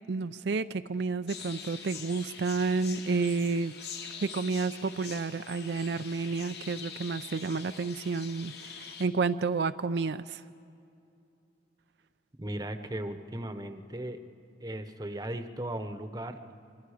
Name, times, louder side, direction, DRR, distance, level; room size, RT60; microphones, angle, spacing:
voice 1, 0.1-3.7 4.2-10.4, right 4 dB, 75° right, 10 dB, 0.4 m, -30 dB
sound 1, 1.3-9.1, left 6 dB, 70° left, 1.9 m, -44 dB
voice 2, 12.4-14.2 14.6-16.4, right 1 dB, 20° right, 8 dB, 0.9 m, -37 dB
26.5 x 25.5 x 5.0 m, 2.5 s
head